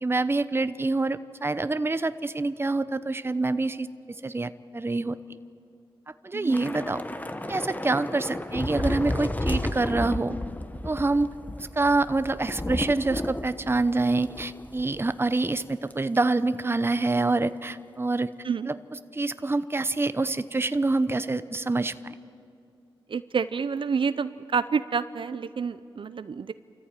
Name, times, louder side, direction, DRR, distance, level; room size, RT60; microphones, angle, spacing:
voice 1, 0.0-3.9 4.2-5.2 6.2-7.0 7.5-10.4 10.8-11.3 11.6-18.3 18.7-18.8 19.1-21.9, right 3 dB, 25° right, 13 dB, 0.7 m, -26 dB
voice 2, 6.3-6.7 18.4-18.7 23.1-26.5, right 5 dB, 60° right, 13 dB, 0.6 m, -28 dB
Thunder / Rain, 6.5-15.1 15.4-15.6 15.9-16.2, left 1 dB, 15° left, 1.1 m, -33 dB
29.0 x 14.5 x 9.0 m, 2.5 s
cardioid pair, 65°, 10 cm